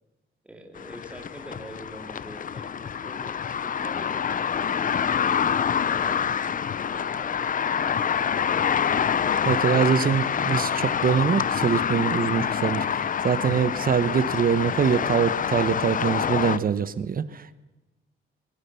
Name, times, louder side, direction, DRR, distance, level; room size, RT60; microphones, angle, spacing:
voice 1, 0.4-8.6, equal, 5° right, 3 dB, 2.9 m, -45 dB
sound 1, 0.8-16.6, left 8 dB, 40° left, 0.7 m, -26 dB
voice 2, 9.4-17.6, right 7 dB, 45° right, 14 dB, 1.1 m, -24 dB
22.0 x 20.0 x 7.0 m, 1.1 s
cardioid pair, 130°, 21 cm